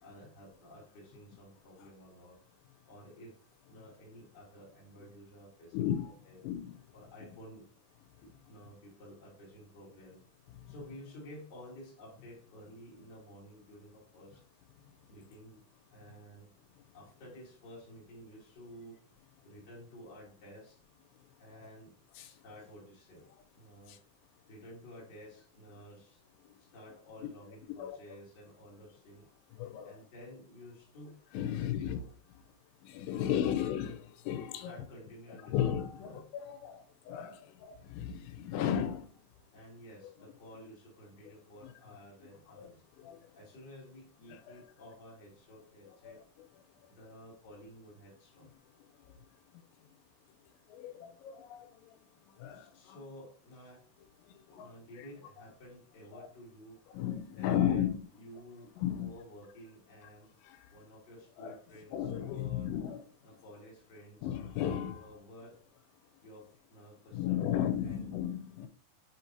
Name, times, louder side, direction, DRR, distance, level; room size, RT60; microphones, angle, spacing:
voice 1, 0.0-2.4 2.8-3.4 3.7-5.9 6.2-6.4 6.9-7.7 8.2-10.2 10.7-14.4 15.1-15.6 15.9-16.5 16.9-20.8 21.4-23.3 23.5-24.0 24.5-26.2 26.6-29.3 29.8-31.2 31.5-32.1 33.5-33.6 34.6-35.7 36.0-36.3 39.5-42.8 43.3-46.2 46.9-48.5 52.5-53.9 54.5-56.9 57.4-60.3 60.7-62.7 63.2-64.3 64.9-65.6 66.2-68.0, equal, 30° left, 2.3 m, -52 dB
voice 2, 5.7-6.2 6.4-6.7 21.6-21.7 22.2-22.3 23.9-24.0 27.8-28.0 29.6-30.0 31.3-32.0 32.8-34.0 34.3-34.7 35.4-39.1 41.6-41.7 42.6-42.7 43.0-43.2 44.3-44.6 45.8-46.2 50.7-51.7 52.4-53.0 54.5-54.7 55.0-55.1 56.1-56.3 56.9-58.1 58.8-59.1 60.4-60.6 61.4-61.6 61.9-63.0 64.2-65.1 67.1-68.7, left 10 dB, 85° left, 3.3 m, -34 dB
8.1 x 4.4 x 2.7 m
omnidirectional pair, 6.0 m